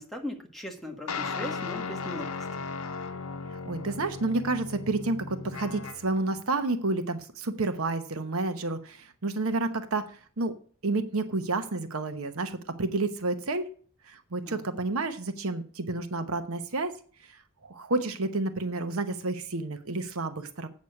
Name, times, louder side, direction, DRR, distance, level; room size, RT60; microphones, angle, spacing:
voice 1, 0.0-2.3 14.4-14.6, left 1 dB, ahead, 1 dB, 1.6 m, -38 dB
sound 1, 1.1-6.2, left 4 dB, 70° left, 0.8 m, -36 dB
voice 2, 3.7-10.5 10.8-13.7 14.1-16.9 17.6-20.7, right 2 dB, 70° right, 9 dB, 1.0 m, -30 dB
8.5 x 6.3 x 6.4 m, 0.43 s
head